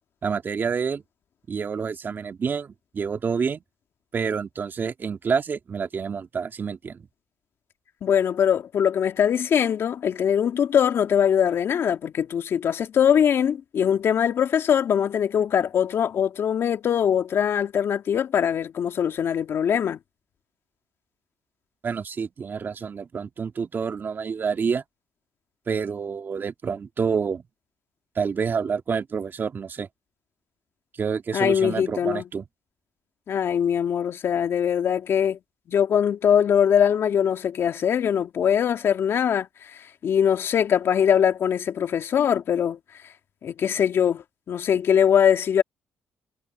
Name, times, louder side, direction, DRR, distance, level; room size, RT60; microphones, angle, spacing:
voice 1, 0.2-1.0 1.5-3.6 4.1-7.1 21.8-24.8 25.7-27.4 28.2-29.9 31.0-32.4, right 6 dB, 45° right, 2.1 m, -28 dB
voice 2, 8.0-20.0 31.3-32.2 33.3-35.4 35.7-39.5 39.8-42.8 43.4-45.6, left 8 dB, 60° left, 2.5 m, -22 dB
supercardioid pair, 70°, 5 cm